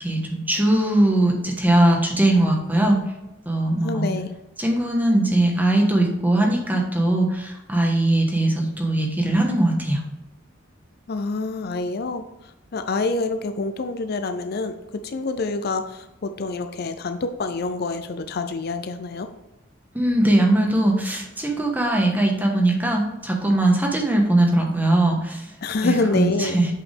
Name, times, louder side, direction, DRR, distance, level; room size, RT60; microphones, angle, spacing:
voice 1, 0.0-3.0 3.4-4.1 4.6-10.0 19.9-25.5 25.8-26.7, right 1 dB, 10° right, 0 dB, 1.3 m, -20 dB
voice 2, 3.8-4.3 11.1-19.3 25.6-26.6, left 3 dB, 55° left, 8 dB, 0.5 m, -27 dB
8.3 x 5.0 x 3.5 m, 0.95 s
head